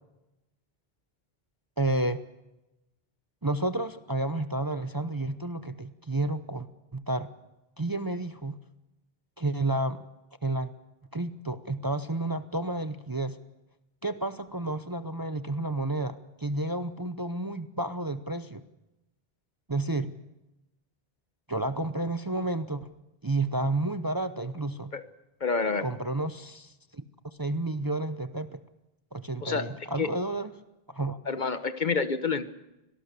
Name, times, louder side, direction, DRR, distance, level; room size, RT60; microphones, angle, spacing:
voice 1, 1.8-2.2 3.4-6.7 6.9-7.3 7.8-8.5 9.4-10.0 10.4-10.7 11.1-13.4 14.0-18.6 19.7-20.1 21.5-22.9 23.2-24.9 25.8-27.0 27.4-28.6 29.1-30.5 30.9-31.2, right 2 dB, 25° right, 10 dB, 0.7 m, -31 dB
voice 2, 25.4-25.9 29.4-29.7 30.0-30.1 31.3-32.4, left 4 dB, 50° left, 11 dB, 1.1 m, -28 dB
24.5 x 18.5 x 6.8 m, 0.95 s
omnidirectional pair, 1.0 m